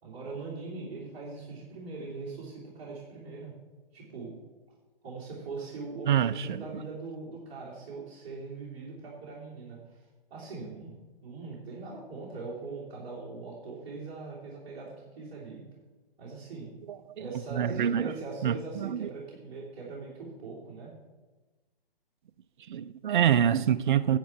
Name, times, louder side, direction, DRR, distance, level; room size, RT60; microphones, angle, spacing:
voice 1, 0.0-3.5 3.9-4.4 5.0-10.0 10.3-11.0 11.2-15.6 16.2-16.7 17.2-20.9, right 4 dB, 30° right, 3.3 m, -41 dB
voice 2, 6.1-6.6 16.9-17.2 17.5-18.1 18.4-19.1 22.7-24.2, right 9 dB, 55° right, 0.4 m, -26 dB
10.5 x 8.3 x 4.6 m
hypercardioid pair, 150°, 30 cm